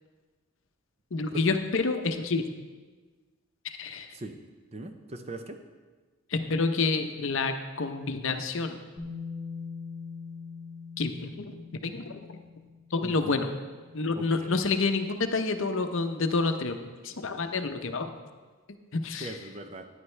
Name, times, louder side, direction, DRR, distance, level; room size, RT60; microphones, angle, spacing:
voice 1, 1.1-2.4 3.6-4.1 6.3-8.8 11.0-11.5 11.8-12.2 12.9-13.5 13.9-18.1 18.9-19.3, left 3 dB, 60° left, 7 dB, 0.7 m, -28 dB
voice 2, 4.7-5.6 13.0-13.5 14.1-14.7 19.2-19.9, right 2 dB, 30° right, 7 dB, 0.6 m, -41 dB
Bass guitar, 9.0-15.0, left 5 dB, 15° left, 2.9 m, -43 dB
14.0 x 9.9 x 3.3 m, 1.4 s
head